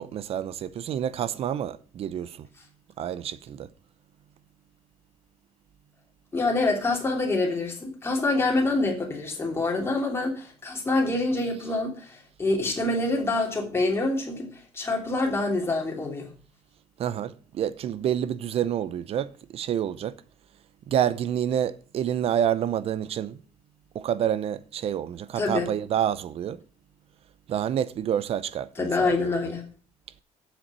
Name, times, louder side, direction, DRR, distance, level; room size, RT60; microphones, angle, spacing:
voice 1, 0.0-2.5 3.0-3.7 17.0-20.1 20.9-23.4 23.9-26.6 27.5-29.4, right 10 dB, 55° right, 0.7 m, -28 dB
voice 2, 6.3-16.3 25.4-25.7 28.8-29.6, left 2 dB, 20° left, 2.9 m, -26 dB
7.7 x 7.0 x 6.2 m
cardioid pair, 130°, 12 cm